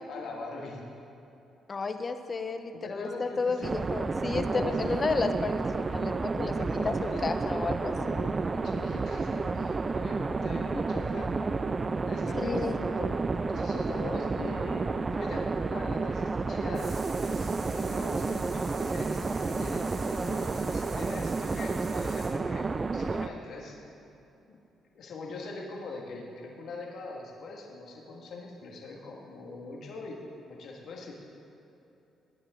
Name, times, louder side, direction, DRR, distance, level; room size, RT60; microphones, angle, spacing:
voice 1, 0.1-0.9 2.8-3.7 4.4-4.8 6.5-7.2 8.0-11.4 12.1-13.1 13.4-16.9 17.3-22.7 22.9-23.8 24.5-24.6 24.9-30.2 30.5-31.1, left 3 dB, 65° left, -1 dB, 2.0 m, -42 dB
voice 2, 1.7-6.9 7.2-7.9 12.3-12.8, left 4 dB, 35° left, 8 dB, 0.9 m, -32 dB
sound 1, 3.6-23.3, right 3 dB, 30° right, 0.4 m, -31 dB
sound 2, 16.7-22.3, right 3 dB, 55° right, 3.3 m, -47 dB
20.0 x 9.6 x 3.8 m, 2.9 s
cardioid pair, 90°, 0 cm